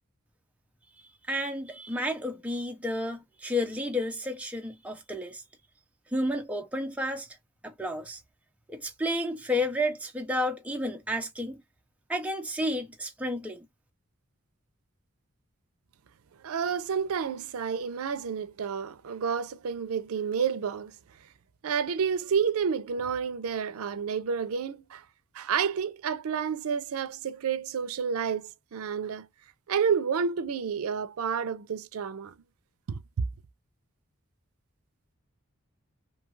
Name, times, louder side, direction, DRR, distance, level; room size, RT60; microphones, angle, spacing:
voice 1, 1.3-5.4 6.1-7.4 7.6-8.2 8.7-11.6 12.1-13.7, left 1 dB, 5° right, 0.4 m, -31 dB
voice 2, 16.4-21.0 21.6-25.0 25.3-29.3 29.7-32.3 32.9-33.0, right 6 dB, 85° right, 0.4 m, -30 dB
2.7 x 2.3 x 3.0 m
head